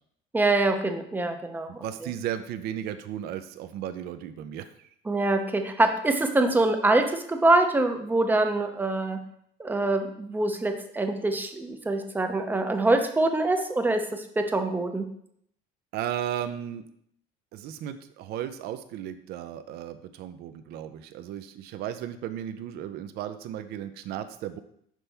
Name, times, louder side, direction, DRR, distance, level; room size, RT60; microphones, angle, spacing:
voice 1, 0.3-1.8 5.1-9.2 9.6-15.0, right 2 dB, 10° right, 5 dB, 0.5 m, -24 dB
voice 2, 1.7-4.9 15.9-16.8 17.5-24.6, right 10 dB, 55° right, 10 dB, 0.5 m, -35 dB
6.0 x 5.4 x 3.4 m, 0.69 s
cardioid pair, 150°, 19 cm